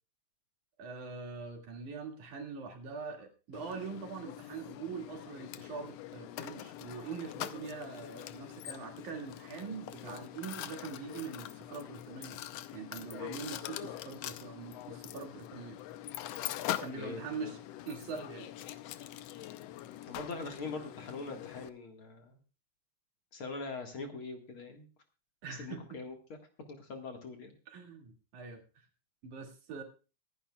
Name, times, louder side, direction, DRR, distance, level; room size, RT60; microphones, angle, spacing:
voice 1, 0.8-12.4 12.7-15.8 16.8-17.6 17.9-18.5 25.4-26.0 27.7-28.6 29.2-29.8, right 5 dB, 80° right, 3 dB, 3.8 m, -43 dB
Mechanisms, 3.5-21.7, left 13 dB, 75° left, 1.6 m, -43 dB
voice 2, 17.0-17.5 20.1-22.4 23.3-24.9 25.6-26.4 26.7-27.5, left 4 dB, 50° left, 4 dB, 2.3 m, -42 dB
25.0 x 10.5 x 2.3 m, 0.34 s
omnidirectional pair, 3.4 m